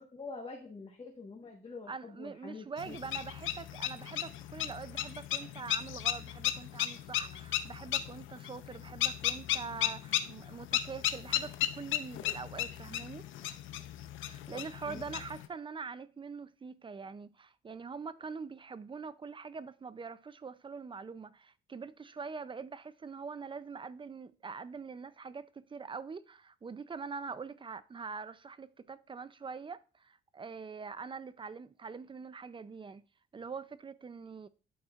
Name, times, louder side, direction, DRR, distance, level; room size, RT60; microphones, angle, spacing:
voice 1, 0.0-3.0 14.5-14.6 14.9-15.0, left 4 dB, 25° left, 1.4 m, -46 dB
voice 2, 1.9-13.3 14.2-33.0 33.3-34.5, right 5 dB, 25° right, 0.5 m, -44 dB
sound 1, 2.8-15.5, left 12 dB, 80° left, 0.6 m, -35 dB
11.5 x 4.2 x 2.5 m
cardioid pair, 90°, 20 cm